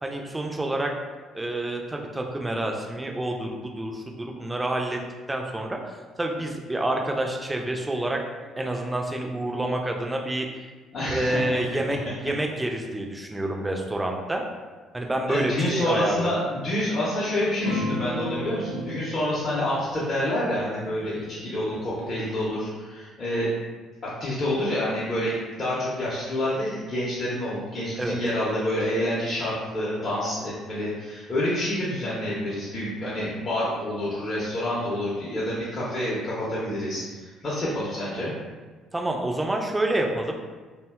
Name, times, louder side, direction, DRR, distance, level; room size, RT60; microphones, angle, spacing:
voice 1, 0.0-0.9 1.3-5.0 5.3-8.2 8.6-10.5 11.1-12.0 12.2-14.4 14.9-16.3 28.0-28.2 38.9-40.4, right 1 dB, 15° right, 2 dB, 0.3 m, -28 dB
voice 2, 10.9-11.6 15.3-23.5 24.0-38.3, left 1 dB, 40° left, -8 dB, 0.6 m, -28 dB
sound 1, 17.6-22.5, left 1 dB, 90° left, 0.4 m, -34 dB
2.6 x 2.1 x 2.3 m, 1.4 s
figure-of-eight pair, 50°, 0 cm